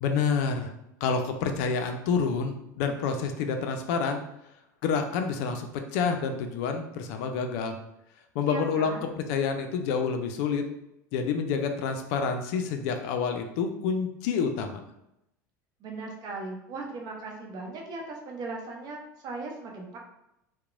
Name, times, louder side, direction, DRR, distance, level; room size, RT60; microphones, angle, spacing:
voice 1, 0.0-0.7 1.0-4.2 4.8-7.8 8.3-8.9 9.3-10.6 11.1-14.8, left 5 dB, 60° left, 5 dB, 0.4 m, -28 dB
voice 2, 8.4-9.1 15.8-20.0, right 3 dB, 40° right, 1 dB, 0.6 m, -38 dB
2.9 x 2.0 x 2.4 m, 0.85 s
hypercardioid pair, 85°, 10 cm